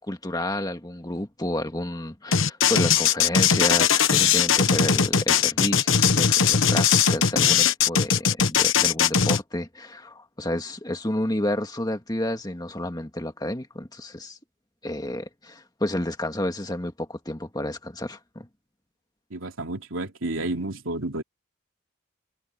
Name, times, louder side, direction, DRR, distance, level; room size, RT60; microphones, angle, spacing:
voice 1, 0.1-14.4 14.8-18.5, left 1 dB, 20° left, 1.9 m, -30 dB
sound 1, 2.3-9.4, left 7 dB, 75° left, 1.2 m, -20 dB
voice 2, 19.3-21.2, right 2 dB, 80° right, 2.8 m, -31 dB
head